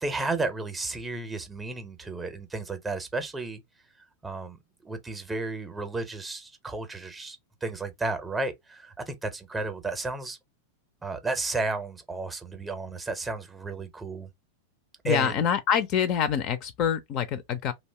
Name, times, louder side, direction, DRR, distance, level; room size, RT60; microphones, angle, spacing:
voice 1, 0.0-3.6 4.2-10.4 11.0-14.3 15.0-15.5, right 3 dB, 10° right, 0.6 m, -33 dB
voice 2, 15.0-17.7, left 8 dB, 40° left, 0.4 m, -26 dB
2.6 x 2.1 x 3.2 m
figure-of-eight pair, 90°, 0 cm